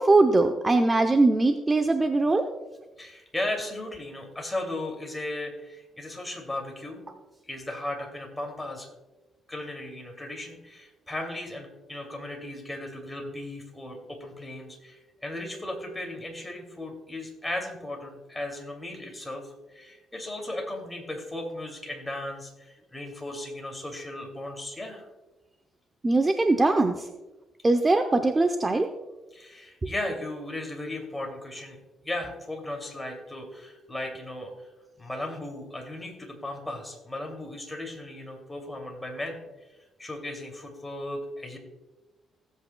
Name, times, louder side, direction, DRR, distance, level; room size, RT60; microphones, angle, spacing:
voice 1, 0.0-2.5 26.0-27.1 27.6-28.9, right 2 dB, 25° right, 6 dB, 0.7 m, -21 dB
voice 2, 3.0-7.1 7.5-8.9 9.5-25.0 29.3-31.8 32.0-34.7 35.0-39.4 40.0-41.6, left 1 dB, 10° left, 2 dB, 2.6 m, -36 dB
16.5 x 8.2 x 2.3 m, 1.1 s
cardioid pair, 90°, 0 cm